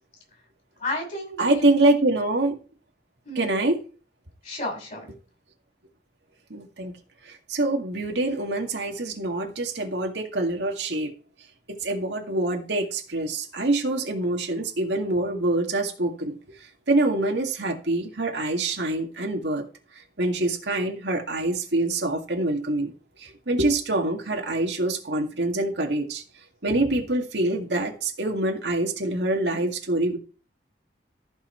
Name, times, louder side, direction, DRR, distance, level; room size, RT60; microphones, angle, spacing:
voice 1, 0.8-2.1 3.2-3.5 4.4-5.0, left 1 dB, 45° left, 6.8 m, -32 dB
voice 2, 1.4-2.6 3.4-3.8 6.5-6.9 7.2-11.1 11.7-16.4 16.9-19.7 19.9-22.9 23.2-26.2 26.6-30.2, right 2 dB, 75° right, 2.0 m, -25 dB
14.5 x 5.7 x 4.5 m
head